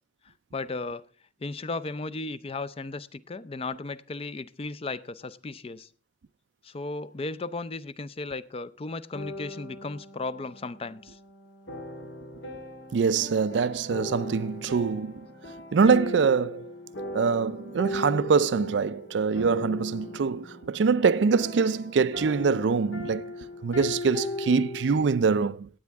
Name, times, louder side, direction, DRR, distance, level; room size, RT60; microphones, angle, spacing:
voice 1, 0.5-1.0 1.4-5.9 6.6-11.2, left 3 dB, 35° left, 0.5 m, -35 dB
sound 1, 9.1-25.1, left 2 dB, 80° left, 1.9 m, -39 dB
voice 2, 12.9-15.1 15.7-16.7 17.1-23.3 23.6-25.7, right 5 dB, 80° right, 0.4 m, -24 dB
17.5 x 8.5 x 3.5 m
head